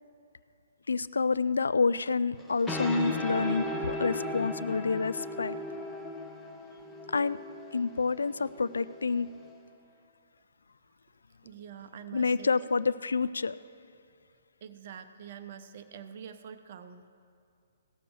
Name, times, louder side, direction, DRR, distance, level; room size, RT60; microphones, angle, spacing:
voice 1, 0.9-5.6 7.1-7.4 7.7-9.3 12.1-13.6, left 4 dB, 75° left, 15 dB, 0.3 m, -28 dB
sound 1, 2.4-9.5, left 1 dB, 10° left, 1.0 m, -37 dB
voice 2, 11.4-12.5 14.6-17.1, right 8 dB, 50° right, 9 dB, 0.6 m, -45 dB
16.0 x 6.8 x 6.2 m, 2.4 s
figure-of-eight pair, 125°, 0 cm